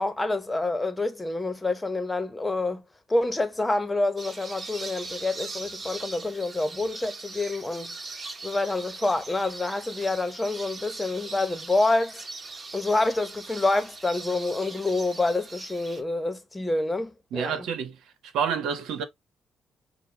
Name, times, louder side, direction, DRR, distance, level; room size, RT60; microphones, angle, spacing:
voice 1, 0.0-2.8 3.1-8.0 8.4-12.2 12.7-17.5, left 2 dB, 15° left, 0.9 m, -27 dB
sound 1, 4.2-16.0, right 3 dB, 35° right, 1.5 m, -40 dB
voice 2, 17.3-19.0, right 7 dB, 85° right, 1.2 m, -29 dB
6.7 x 2.3 x 3.3 m
cardioid pair, 90°, 0 cm